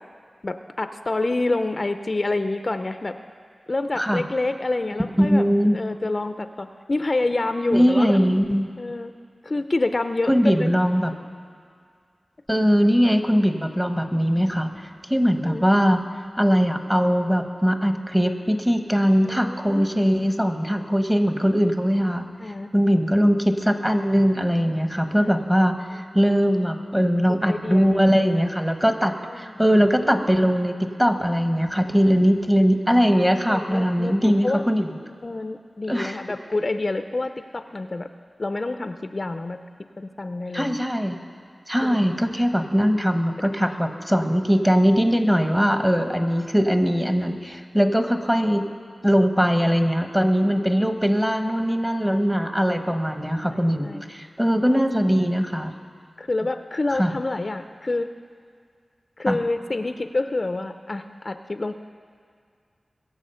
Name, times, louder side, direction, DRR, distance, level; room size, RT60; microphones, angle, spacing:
voice 1, 0.4-3.2 3.7-5.4 5.7-8.2 8.8-9.1 9.4-10.4 15.4-15.7 19.2-20.3 22.4-22.7 25.2-25.5 25.9-26.2 27.3-28.0 29.3-29.5 32.1-32.2 33.5-34.6 35.2-38.1 38.4-39.6 40.0-40.8 41.8-42.0 42.4-42.5 43.7-43.8 53.4-54.0 54.7-55.1 56.2-58.1 59.2-61.8, left 2 dB, 45° left, 8 dB, 0.5 m, -28 dB
voice 2, 5.2-5.8 7.7-8.7 10.3-11.1 12.5-16.0 16.4-22.3 22.7-34.9 35.9-36.2 40.5-41.2 41.7-48.7 49.0-55.7 57.0-57.1 59.3-59.4, equal, 10° right, 6 dB, 1.1 m, -21 dB
22.0 x 7.4 x 5.6 m, 2.2 s
wide cardioid pair, 65°, 0 cm